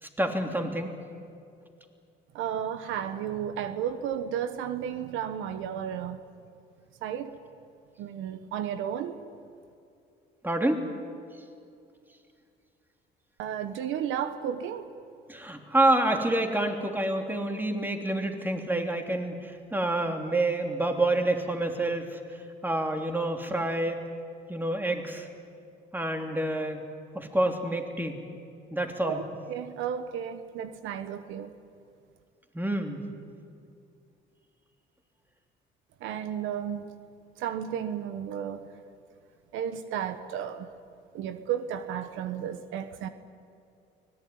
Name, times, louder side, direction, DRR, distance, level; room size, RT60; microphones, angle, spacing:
voice 1, 0.0-0.9 10.4-10.9 15.3-24.0 24.5-25.3 25.9-26.9 27.1-28.2 28.7-29.2 32.5-33.1, right 1 dB, 10° right, 4 dB, 3.1 m, -28 dB
voice 2, 2.3-6.2 7.0-7.4 8.0-9.2 13.4-14.9 29.0-29.2 29.5-31.5 36.0-36.8 37.4-38.7 39.5-40.7 41.1-43.1, right 9 dB, 80° right, 10 dB, 1.3 m, -33 dB
24.0 x 18.0 x 9.6 m, 2.5 s
cardioid pair, 85°, 20 cm